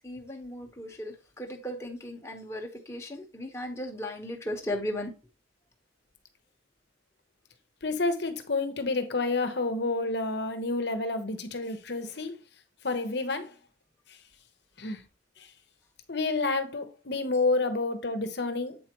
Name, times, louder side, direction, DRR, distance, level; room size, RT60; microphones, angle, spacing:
voice 1, 0.0-5.1, left 1 dB, 15° left, 1.2 m, -36 dB
voice 2, 7.8-12.4 12.8-13.5 14.1-14.2 14.8-15.0 15.4-15.5 16.1-18.8, left 3 dB, 55° left, 1.0 m, -29 dB
7.9 x 4.8 x 3.0 m
head